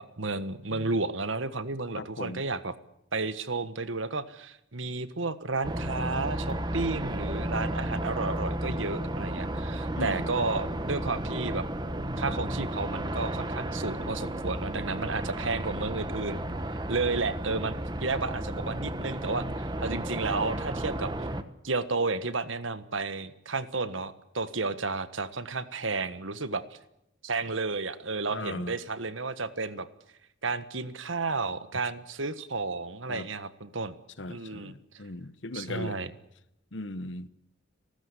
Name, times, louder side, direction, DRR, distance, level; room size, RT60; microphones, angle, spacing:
voice 1, 0.0-2.7 3.1-11.7 12.2-16.4 16.9-21.3 21.6-26.6 27.2-29.9 30.4-33.9 34.3-34.7 35.5-36.1, right 3 dB, 80° right, 1.5 m, -32 dB
voice 2, 2.0-2.4 9.9-10.3 28.3-28.7 33.1-33.3 34.2-36.0 36.7-37.3, left 2 dB, 70° left, 1.1 m, -38 dB
sound 1, 5.6-21.4, right 1 dB, 20° right, 1.2 m, -33 dB
30.0 x 13.5 x 9.7 m
head